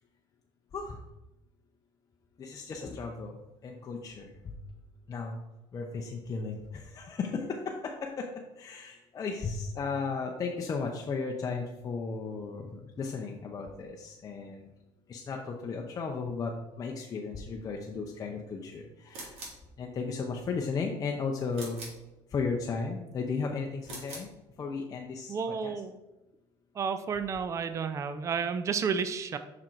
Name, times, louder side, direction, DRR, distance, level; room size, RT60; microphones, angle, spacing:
voice 1, 2.4-4.6 5.1-5.4 5.7-14.7 15.1-19.5 19.8-21.9 22.3-24.3 24.6-25.3 25.6-25.7, left 4 dB, 30° left, 1 dB, 0.6 m, -35 dB
sound 1, 19.1-19.7 21.5-22.1 23.8-24.3, right 2 dB, 60° right, 2.1 m, -43 dB
voice 2, 25.3-26.0 26.7-29.4, right 6 dB, 25° right, 10 dB, 0.4 m, -31 dB
5.9 x 3.7 x 4.5 m, 0.96 s
supercardioid pair, 110°, 12 cm